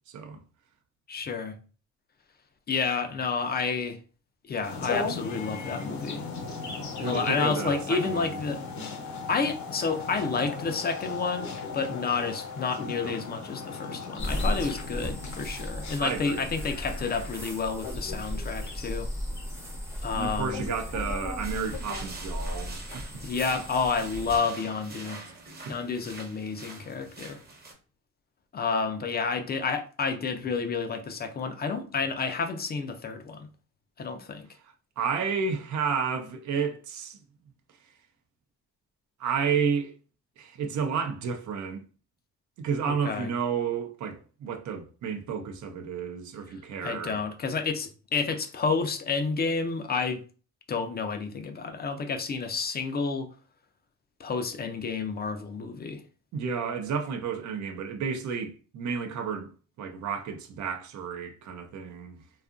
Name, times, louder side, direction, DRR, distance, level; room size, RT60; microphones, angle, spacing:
voice 1, 0.1-0.4 7.0-8.4 12.9-13.2 16.0-16.5 20.1-23.2 25.7-25.8 34.6-37.2 39.2-39.9 40.4-41.8 42.6-47.2 56.3-59.5 59.8-62.2, right 6 dB, 70° right, 0.6 m, -31 dB
voice 2, 1.1-1.6 2.7-4.0 4.4-6.2 7.0-8.6 9.0-19.1 20.0-20.7 23.2-25.2 25.7-27.4 28.5-33.5 34.0-34.5 43.0-43.3 46.8-50.2 50.7-53.3 54.2-56.0, left 5 dB, 35° left, 0.4 m, -30 dB
sound 1, 4.6-22.4 22.9-23.0, left 4 dB, 70° left, 0.8 m, -38 dB
sound 2, 14.2-24.4, equal, 10° right, 0.6 m, -35 dB
sound 3, 21.4-27.7, right 3 dB, 30° right, 0.8 m, -45 dB
2.7 x 2.3 x 2.4 m
cardioid pair, 90°, 30 cm